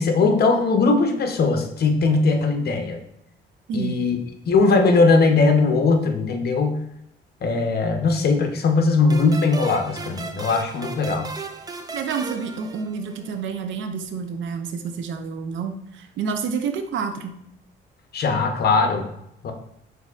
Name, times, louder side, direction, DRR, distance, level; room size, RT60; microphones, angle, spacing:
voice 1, 0.0-3.0 3.7-4.2 4.5-6.8 7.4-11.3 18.1-19.1 19.4-19.5, left 3 dB, 55° left, 5 dB, 0.8 m, -19 dB
voice 2, 3.7-4.0 11.9-17.3, right 6 dB, 70° right, 6 dB, 0.6 m, -29 dB
sound 1, 9.1-13.5, right 3 dB, 20° right, 0.4 m, -35 dB
6.3 x 2.7 x 2.4 m, 0.77 s
cardioid pair, 90°, 20 cm